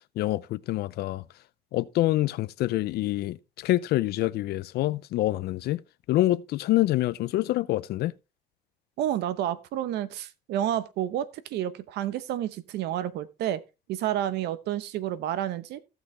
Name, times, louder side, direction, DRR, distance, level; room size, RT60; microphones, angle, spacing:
voice 1, 0.2-1.2 1.7-5.8 6.1-8.1, left 16 dB, 70° left, 0.5 m, -26 dB
voice 2, 9.0-13.6 13.9-15.8, right 11 dB, 80° right, 0.9 m, -30 dB
15.5 x 6.0 x 3.2 m
cardioid pair, 110°, 17 cm